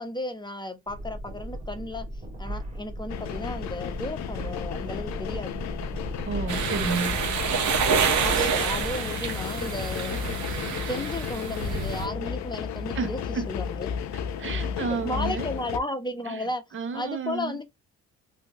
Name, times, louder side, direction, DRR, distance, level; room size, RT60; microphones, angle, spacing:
voice 1, 0.0-2.1 2.4-5.5 8.2-10.6 10.9-13.2 13.5-13.9 15.0-16.6 16.9-17.6, left 1 dB, 15° left, 0.7 m, -34 dB
sound 1, 0.9-9.0, right 1 dB, 25° right, 1.9 m, -37 dB
sound 2, 3.1-15.8, left 8 dB, 65° left, 0.6 m, -33 dB
voice 2, 6.2-7.2 12.9-13.5 14.1-15.5 16.3-16.5 16.7-17.6, right 5 dB, 45° right, 0.6 m, -32 dB
sound 3, 6.5-12.1, right 6 dB, 70° right, 1.0 m, -28 dB
3.3 x 2.7 x 2.7 m
cardioid pair, 90°, 30 cm